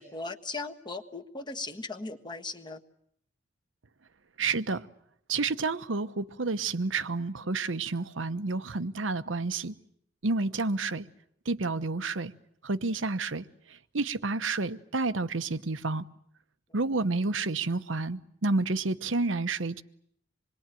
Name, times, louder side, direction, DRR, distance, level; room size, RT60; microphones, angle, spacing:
voice 1, 0.0-2.8, left 3 dB, 25° left, 1.5 m, -38 dB
voice 2, 4.4-4.8 5.3-9.7 10.2-11.1 11.5-12.3 12.6-13.4 13.9-16.0 16.7-19.8, right 3 dB, 90° right, 1.0 m, -30 dB
26.5 x 21.5 x 9.1 m
head